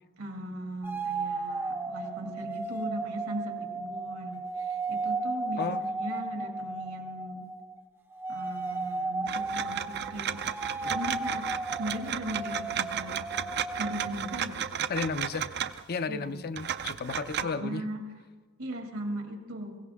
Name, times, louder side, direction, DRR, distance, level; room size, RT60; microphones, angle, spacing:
voice 1, 0.2-7.5 8.3-10.4 10.8-11.5 11.8-13.2 13.8-14.6 16.1-16.4 17.4-18.0 18.6-19.8, right 1 dB, 75° right, 3 dB, 2.3 m, -38 dB
sound 1, 0.8-7.8 8.1-14.4, right 3 dB, 10° right, 0.6 m, -35 dB
sound 2, 9.3-16.0 16.6-17.4, right 8 dB, 55° right, 0.5 m, -34 dB
voice 2, 14.9-15.5 15.9-17.8, left 4 dB, 45° left, 11 dB, 0.5 m, -33 dB
23.0 x 16.0 x 3.5 m, 1.4 s
head